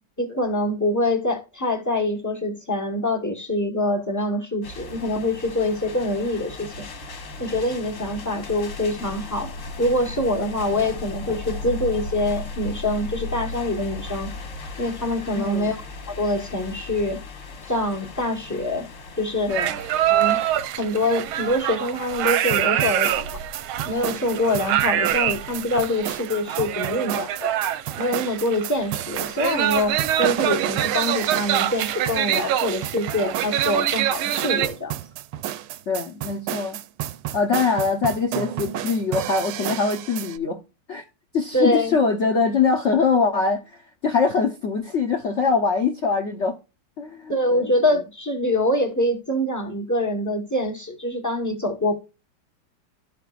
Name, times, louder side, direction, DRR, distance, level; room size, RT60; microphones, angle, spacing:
voice 1, 0.2-6.9 7.4-9.5 9.8-14.3 14.8-15.8 16.1-17.2 17.7-18.9 19.2-19.6 20.1-20.4 20.8-23.3 23.9-27.5 28.0-34.9 41.5-42.0 47.3-51.9, left 1 dB, 20° left, 0.5 m, -25 dB
sound 1, 4.6-20.7, left 3 dB, 45° left, 1.3 m, -36 dB
voice 2, 15.3-15.8 19.5-19.7 35.9-36.8 37.3-40.6 40.9-41.0 41.3-46.6 47.0-47.6, left 4 dB, 70° left, 0.6 m, -23 dB
sound 2, 19.5-34.7, right 12 dB, 90° right, 1.5 m, -25 dB
sound 3, 22.2-40.4, right 11 dB, 75° right, 1.1 m, -31 dB
12.5 x 4.9 x 2.3 m
omnidirectional pair, 2.2 m